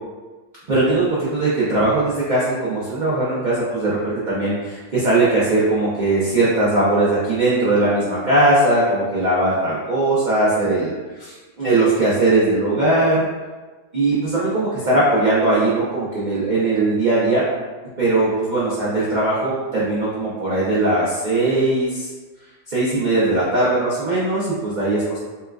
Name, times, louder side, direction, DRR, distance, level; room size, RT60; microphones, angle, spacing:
voice 1, 0.7-10.9 11.2-13.3 13.9-17.5 18.0-22.1 22.7-25.2, right 2 dB, 85° right, -9 dB, 0.4 m, -19 dB
4.1 x 2.3 x 2.2 m, 1.3 s
omnidirectional pair, 1.8 m